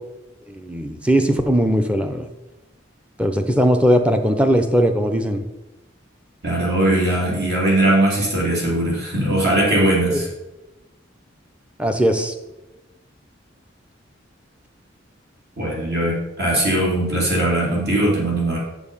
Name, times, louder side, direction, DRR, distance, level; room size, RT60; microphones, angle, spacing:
voice 1, 0.5-2.3 3.2-5.4 10.1-10.2 11.8-12.3, equal, 5° right, 6 dB, 0.7 m, -19 dB
voice 2, 6.4-10.3 15.6-18.6, right 1 dB, 55° right, -4 dB, 3.1 m, -20 dB
7.0 x 6.8 x 5.5 m, 1.0 s
head